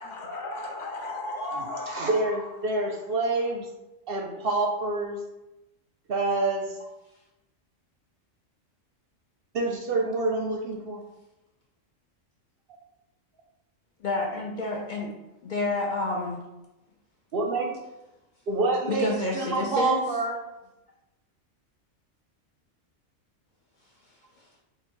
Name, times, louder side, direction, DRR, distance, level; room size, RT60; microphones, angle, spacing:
voice 1, 0.0-2.4, left 2 dB, 75° left, 0 dB, 1.1 m, -35 dB
voice 2, 1.5-3.7 4.1-5.2 6.1-6.8 9.5-11.0 17.3-17.7 18.5-20.3, right 2 dB, 60° right, 1 dB, 0.7 m, -27 dB
voice 3, 14.0-15.1 15.4-16.4 18.9-20.1 24.4-24.5, left 2 dB, 55° left, -2 dB, 0.6 m, -29 dB
3.8 x 2.4 x 4.3 m, 0.95 s
omnidirectional pair, 1.3 m